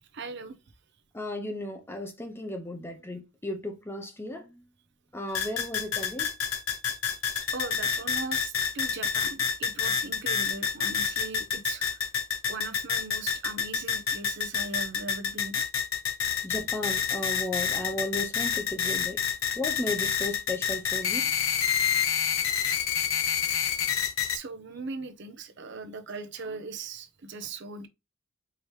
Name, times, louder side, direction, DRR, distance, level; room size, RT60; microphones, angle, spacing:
voice 1, 0.1-0.6 5.3-5.4 7.5-12.0 12.5-15.6 24.3-27.9, right 3 dB, 55° right, 0.7 m, -39 dB
voice 2, 1.1-4.6 5.1-6.3 16.4-19.2 19.6-21.2, left 1 dB, 10° left, 0.7 m, -35 dB
sound 1, 5.3-24.4, left 7 dB, 80° left, 0.7 m, -28 dB
4.8 x 2.9 x 3.1 m
head